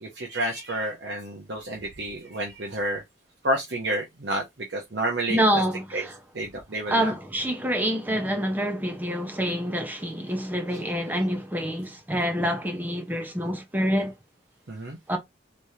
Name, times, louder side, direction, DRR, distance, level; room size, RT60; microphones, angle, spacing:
voice 1, 0.0-3.0 3.4-4.4 4.7-5.4 5.9-6.0 6.3-7.1 14.7-15.0, right 1 dB, 60° right, 0.8 m, -29 dB
voice 2, 5.3-6.2 6.9-14.1 15.1-15.2, equal, 10° right, 0.6 m, -26 dB
3.5 x 3.0 x 2.7 m
head